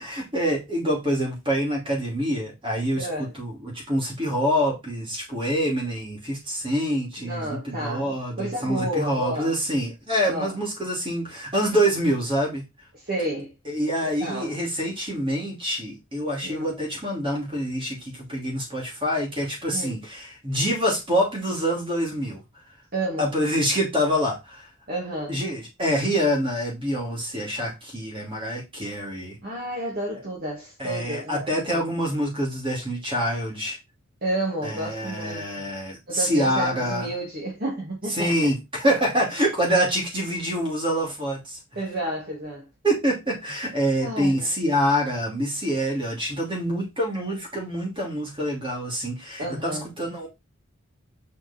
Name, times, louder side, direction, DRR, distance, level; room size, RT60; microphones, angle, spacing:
voice 1, 0.0-12.6 13.7-22.4 23.2-24.7 25.3-29.4 30.8-33.8 34.6-37.1 38.1-41.6 42.8-50.3, equal, 25° right, 2.9 m, -26 dB
voice 2, 2.9-3.3 7.2-9.5 10.3-10.5 12.9-13.5 14.0-14.5 16.4-16.7 19.7-20.0 22.9-23.3 24.9-25.4 29.4-31.8 34.2-35.7 36.1-38.3 41.8-42.7 44.0-44.5 49.4-49.9, right 1 dB, 45° right, 2.3 m, -31 dB
7.0 x 4.5 x 4.3 m
head